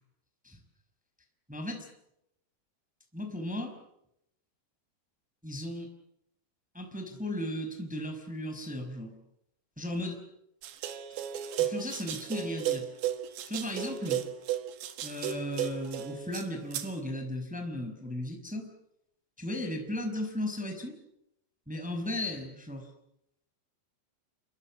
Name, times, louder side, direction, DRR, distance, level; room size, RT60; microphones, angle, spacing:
voice 1, 1.5-1.9 3.1-3.7 5.4-5.9 6.7-9.1 9.8-10.2 11.6-12.9 13.5-14.3 15.0-18.7 19.4-21.0 21.7-22.9, left 1 dB, ahead, 4 dB, 4.7 m, -36 dB
sound 1, 10.6-16.9, right 11 dB, 80° right, 4.0 m, -34 dB
29.0 x 25.5 x 7.5 m, 0.80 s
omnidirectional pair, 5.0 m